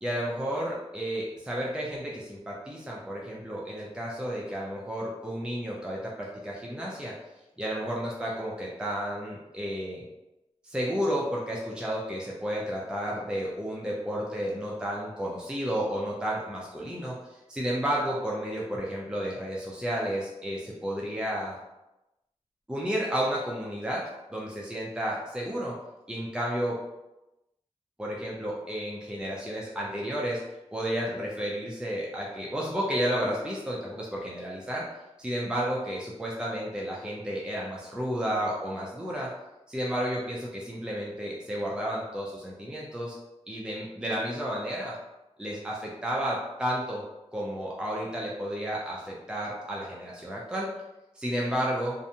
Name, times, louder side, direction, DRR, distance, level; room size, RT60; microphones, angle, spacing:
voice 1, 0.0-7.1 7.6-10.0 10.6-17.1 17.5-21.6 22.7-24.0 24.3-25.7 26.1-26.7 28.0-30.4 30.7-34.8 35.2-39.3 39.7-43.2 43.5-45.0 45.4-47.0 47.3-50.7 51.2-51.9, equal, 5° right, -4 dB, 0.5 m, -32 dB
2.6 x 2.1 x 2.7 m, 0.97 s
wide cardioid pair, 65°, 12 cm